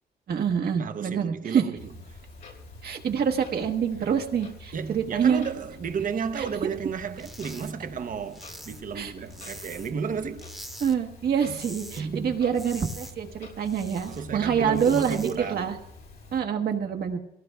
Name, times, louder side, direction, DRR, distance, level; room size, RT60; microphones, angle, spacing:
voice 1, 0.3-1.6 2.8-5.4 6.4-6.5 8.9-9.1 10.8-15.7 16.3-17.2, right 7 dB, 75° right, 1.3 m, -26 dB
voice 2, 0.8-2.2 4.0-4.1 4.7-10.5 11.5-11.6 12.0-12.4 14.0-15.7, right 6 dB, 55° right, 0.8 m, -33 dB
Clock, 1.7-16.4, left 3 dB, 85° left, 5.5 m, -47 dB
whisk handle - toothpick, 7.1-7.7 8.0-10.0 10.4-11.0 11.3-12.0 12.3-14.2 14.6-15.4, equal, ahead, 1.1 m, -44 dB
24.0 x 17.5 x 2.3 m
wide cardioid pair, 135°, 16 cm